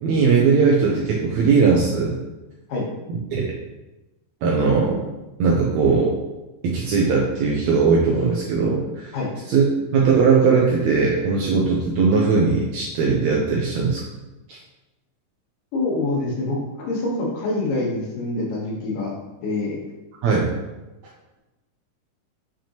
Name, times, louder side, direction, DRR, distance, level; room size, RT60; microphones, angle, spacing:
voice 1, 0.0-2.2 3.3-3.4 4.4-5.0 5.4-6.1 6.6-9.2 9.5-14.0 14.5-14.6 20.2-20.5, right 5 dB, 75° right, -2 dB, 1.7 m, -19 dB
voice 2, 15.7-19.1 19.4-19.8, left 2 dB, 75° left, -3 dB, 3.0 m, -25 dB
7.1 x 5.1 x 3.0 m, 1.0 s
omnidirectional pair, 4.0 m